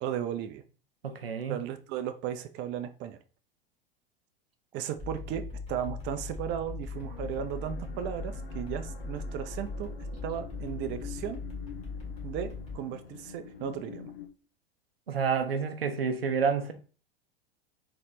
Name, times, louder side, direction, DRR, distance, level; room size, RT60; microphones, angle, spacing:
voice 1, 0.0-0.6 1.5-3.2 4.7-5.4 5.7-9.9 10.2-11.4 12.2-14.1, right 10 dB, 40° right, 0.6 m, -35 dB
voice 2, 1.0-1.6 15.1-16.7, right 6 dB, 85° right, 0.6 m, -29 dB
sound 1, 5.0-12.8, left 3 dB, 25° left, 2.1 m, -39 dB
sound 2, 6.9-14.3, left 7 dB, 85° left, 0.7 m, -46 dB
4.1 x 3.8 x 3.2 m
figure-of-eight pair, 85°, 29 cm